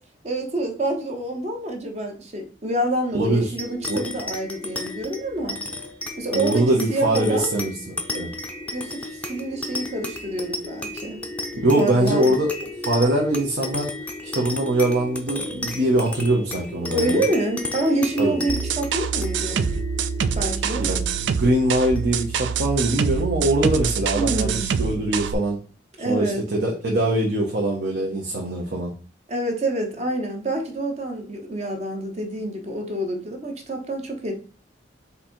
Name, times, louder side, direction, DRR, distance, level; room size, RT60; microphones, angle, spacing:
voice 1, 0.2-5.6 6.2-7.5 8.7-11.2 11.8-12.3 16.9-19.7 20.4-20.9 24.1-24.7 26.0-26.4 29.3-34.4, right 1 dB, 35° right, 3 dB, 0.9 m, -27 dB
voice 2, 3.1-3.5 3.9-4.0 6.3-8.3 11.5-13.9 14.3-17.2 18.2-18.3 20.7-25.6 26.0-28.9, right 1 dB, 65° right, -2 dB, 0.9 m, -22 dB
sound 1, 3.6-22.4, left 2 dB, 10° left, 0.5 m, -33 dB
sound 2, 18.5-25.3, right 6 dB, 85° right, 0.4 m, -25 dB
4.0 x 2.8 x 4.4 m, 0.37 s
head